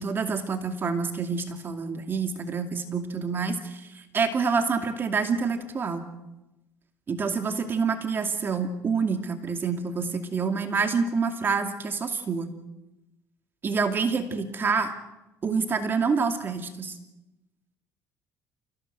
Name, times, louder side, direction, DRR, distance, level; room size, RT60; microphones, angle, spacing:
voice 1, 0.0-6.1 7.1-12.5 13.6-14.9 15.4-16.9, right 5 dB, 35° right, 6 dB, 2.5 m, -27 dB
28.5 x 17.5 x 8.0 m, 0.98 s
cardioid pair, 115°, 6 cm